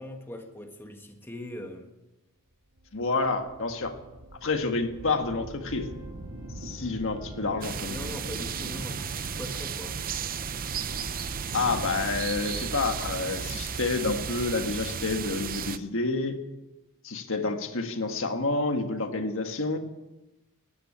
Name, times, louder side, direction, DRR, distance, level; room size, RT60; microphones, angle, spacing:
voice 1, 0.0-1.9 6.8-6.9 7.9-10.0, left 1 dB, 10° left, 4 dB, 1.4 m, -41 dB
sound 1, 2.8-14.8, right 1 dB, 90° right, 2.1 m, -44 dB
voice 2, 2.9-4.0 4.4-5.9 6.6-8.0 11.5-16.4 17.0-19.8, left 3 dB, 65° left, 6 dB, 1.6 m, -29 dB
sound 2, 7.6-15.8, right 7 dB, 40° right, 0.7 m, -34 dB
13.5 x 10.5 x 8.7 m, 1.0 s
head